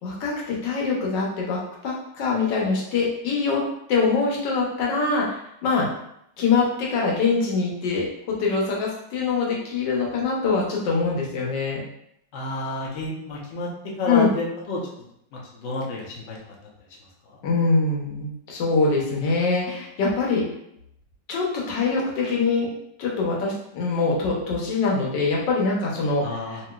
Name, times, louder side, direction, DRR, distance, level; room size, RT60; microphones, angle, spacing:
voice 1, 0.0-3.6 3.9-5.9 6.4-11.8 14.1-14.3 17.4-20.4 21.3-22.7 23.0-26.2, left 4 dB, 80° left, -3 dB, 1.4 m, -24 dB
voice 2, 12.3-14.8 15.3-16.4 17.3-17.4 26.2-26.6, left 2 dB, 60° left, -3 dB, 0.7 m, -30 dB
2.9 x 2.8 x 2.2 m, 0.75 s
omnidirectional pair, 1.9 m